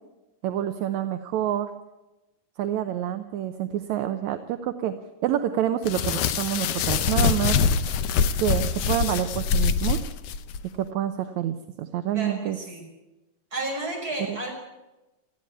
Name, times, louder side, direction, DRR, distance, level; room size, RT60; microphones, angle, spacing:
voice 1, 0.4-1.7 2.6-5.0 5.2-7.6 8.4-10.0 10.8-12.6 14.3-14.4, right 11 dB, 70° right, 8 dB, 1.9 m, -27 dB
sound 1, 5.8-10.6, left 6 dB, 75° left, 1.4 m, -24 dB
voice 2, 12.1-12.8 13.5-14.5, right 2 dB, 25° right, 0 dB, 6.3 m, -32 dB
19.5 x 14.5 x 9.7 m, 1.0 s
omnidirectional pair, 3.9 m